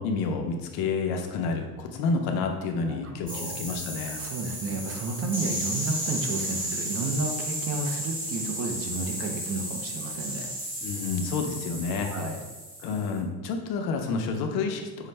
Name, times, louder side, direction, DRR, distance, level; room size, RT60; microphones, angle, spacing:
voice 1, 0.0-4.2 10.8-12.1 12.8-15.1, left 4 dB, 75° left, 4 dB, 0.6 m, -29 dB
voice 2, 2.9-3.6 4.1-10.5 12.0-12.4, right 3 dB, 40° right, 3 dB, 0.4 m, -32 dB
sound 1, 3.3-13.1, equal, 20° right, 0.9 m, -34 dB
5.6 x 2.1 x 3.2 m, 1.2 s
cardioid pair, 165°, 38 cm